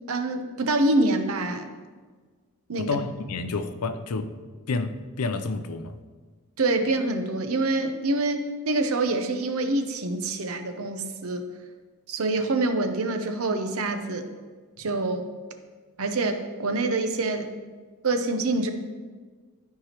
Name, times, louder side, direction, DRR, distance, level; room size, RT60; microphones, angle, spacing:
voice 1, 0.1-1.7 2.7-2.9 6.6-11.5 12.1-14.3 14.8-15.3 16.0-17.5 18.0-18.7, right 2 dB, 65° right, 0.7 m, -26 dB
voice 2, 2.8-4.3 4.7-6.0, left 3 dB, 85° left, 0.6 m, -29 dB
13.0 x 4.7 x 2.9 m
head